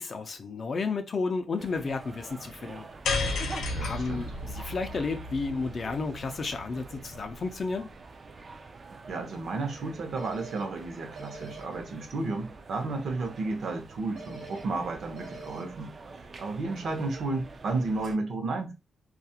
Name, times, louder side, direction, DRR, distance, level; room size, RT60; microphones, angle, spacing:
voice 1, 0.0-2.9 3.8-7.9, left 4 dB, 45° left, 0.3 m, -32 dB
sound 1, 1.6-18.2, right 3 dB, 40° right, 0.3 m, -46 dB
sound 2, 3.0-7.4, left 3 dB, 80° left, 0.6 m, -33 dB
voice 2, 3.7-4.3 9.1-18.7, right 3 dB, 60° right, 0.7 m, -33 dB
sound 3, 10.2-10.6 11.2-11.6 14.2-14.6 15.2-15.6, right 2 dB, 90° right, 1.1 m, -44 dB
2.3 x 2.1 x 2.7 m
cardioid pair, 110°, 0 cm